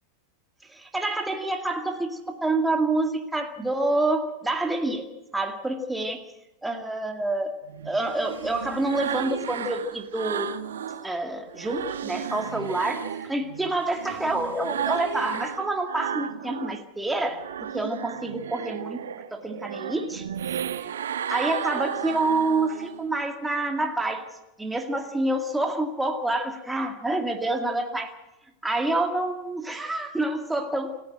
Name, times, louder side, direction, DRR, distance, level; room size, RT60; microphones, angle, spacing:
voice 1, 0.7-5.1 5.3-6.2 6.6-7.5 7.8-10.5 11.0-19.0 19.3-20.3 20.8-20.9 21.3-24.2 24.6-28.1 28.6-31.0, right 2 dB, 5° right, 4 dB, 2.2 m, -27 dB
sound 1, 7.7-11.1 11.5-16.8 17.2-23.1, right 9 dB, 65° right, 1.1 m, -34 dB
28.0 x 10.5 x 9.2 m, 0.95 s
figure-of-eight pair, 90°, 0 cm